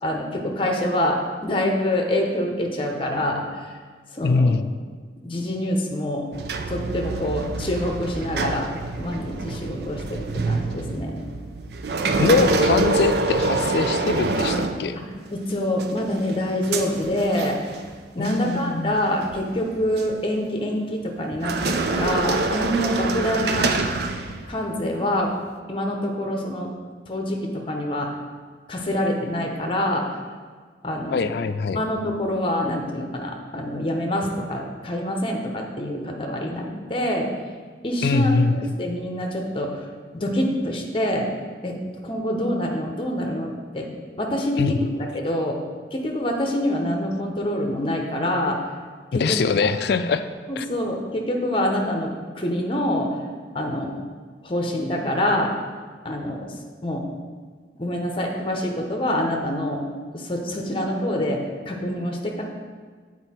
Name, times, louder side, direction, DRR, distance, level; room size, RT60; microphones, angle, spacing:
voice 1, 0.0-3.6 4.1-4.5 5.2-6.3 6.7-8.7 9.0-11.2 15.3-17.6 18.1-23.7 24.5-25.3 25.7-26.7 27.1-28.2 28.7-30.1 30.8-31.3 31.7-37.3 37.8-39.9 40.1-41.3 41.6-41.8 42.0-43.9 44.2-45.6 45.9-48.6 49.1-49.7 50.5-53.2 53.5-54.0 54.4-55.5 56.0-57.1 57.8-59.9 60.1-62.4, left 1 dB, 30° left, 1 dB, 0.8 m, -26 dB
voice 2, 4.2-4.7 12.2-15.0 18.2-19.0 31.1-31.8 38.0-38.6 44.6-44.8 49.1-50.3 50.6-50.7, left 4 dB, 60° left, 11 dB, 0.3 m, -22 dB
sound 1, 6.3-15.3 15.8-17.9 18.2-18.5 19.2-20.1 21.3-24.7, right 3 dB, 60° right, 0.5 m, -26 dB
8.0 x 4.4 x 4.3 m, 1.5 s
head